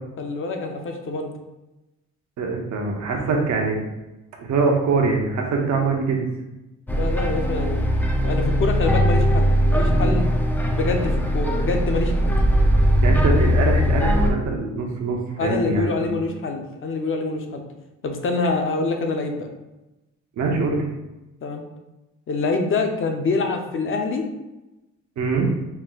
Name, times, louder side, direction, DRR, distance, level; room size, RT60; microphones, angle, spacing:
voice 1, 0.2-1.3 6.9-7.8 8.2-10.3 10.7-12.4 15.4-17.6 18.0-19.5 21.4-21.6 22.3-24.3, left 3 dB, 45° left, 4 dB, 0.7 m, -25 dB
voice 2, 2.4-3.8 4.4-6.3 13.0-16.3 20.4-20.8 25.2-25.5, right 4 dB, 65° right, 0 dB, 0.9 m, -23 dB
sound 1, 6.9-14.3, equal, 5° left, 0.4 m, -20 dB
4.4 x 2.1 x 3.8 m, 1.0 s
cardioid pair, 90°, 30 cm